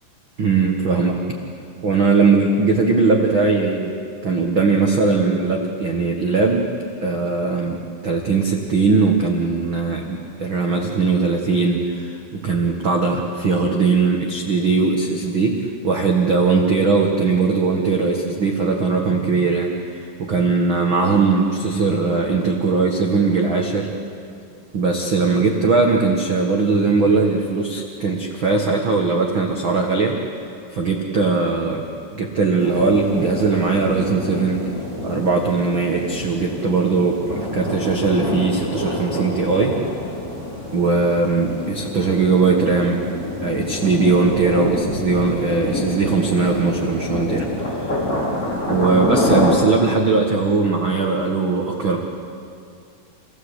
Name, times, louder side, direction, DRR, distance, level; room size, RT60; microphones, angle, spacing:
voice 1, 0.4-1.2 1.8-3.9 4.2-6.7 7.0-23.9 24.7-30.2 30.7-34.7 35.0-39.8 40.7-43.0 43.4-47.5 47.8-47.9 48.7-52.0, right 4 dB, 75° right, 0 dB, 1.1 m, -19 dB
sound 1, 32.6-49.5, left 1 dB, 20° left, 3.9 m, -27 dB
28.0 x 17.0 x 8.2 m, 2.4 s
omnidirectional pair, 4.9 m